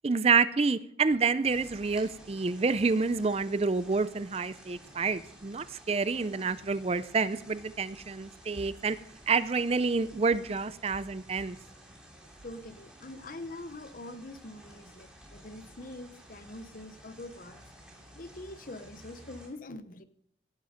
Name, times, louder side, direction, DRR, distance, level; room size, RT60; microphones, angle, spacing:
voice 1, 0.0-9.0 9.3-11.6, right 4 dB, 30° right, 15 dB, 0.4 m, -28 dB
sound 1, 1.4-19.5, right 1 dB, 5° right, 3.4 m, -53 dB
voice 2, 12.4-17.6 18.1-20.0, left 2 dB, 45° left, 12 dB, 0.9 m, -44 dB
18.0 x 10.5 x 5.1 m, 0.71 s
head